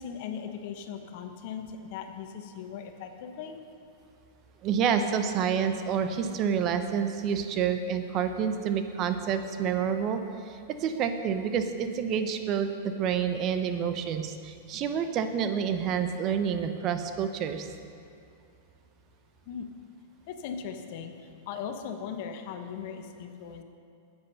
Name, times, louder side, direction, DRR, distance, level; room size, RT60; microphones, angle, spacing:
voice 1, 0.0-3.6 19.5-19.7 20.3-21.1 21.5-23.6, left 7 dB, 55° left, 6 dB, 0.9 m, -38 dB
voice 2, 4.6-17.7, right 7 dB, 40° right, 8 dB, 0.7 m, -28 dB
9.5 x 8.1 x 5.5 m, 2.4 s
hypercardioid pair, 120°, 0 cm